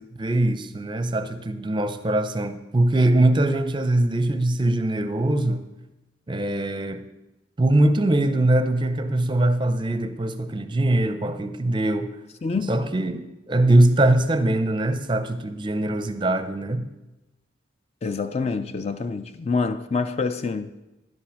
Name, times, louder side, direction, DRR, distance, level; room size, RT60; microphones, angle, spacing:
voice 1, 0.2-5.6 6.3-7.0 7.6-12.1 12.7-16.8, right 1 dB, 25° right, 0.5 m, -22 dB
voice 2, 12.4-12.8 18.0-20.7, left 4 dB, 30° left, 0.3 m, -26 dB
11.0 x 5.8 x 6.4 m
head